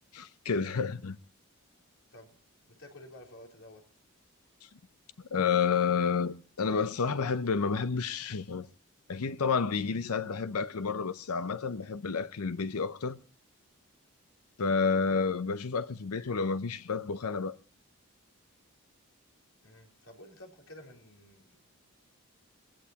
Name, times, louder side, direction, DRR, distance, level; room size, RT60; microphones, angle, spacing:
voice 1, 0.1-1.2 5.3-8.7 9.1-13.2 14.6-17.6, left 5 dB, 90° left, 0.7 m, -30 dB
voice 2, 2.7-3.8 19.6-21.6, left 1 dB, 70° left, 3.5 m, -51 dB
20.5 x 15.5 x 2.9 m
head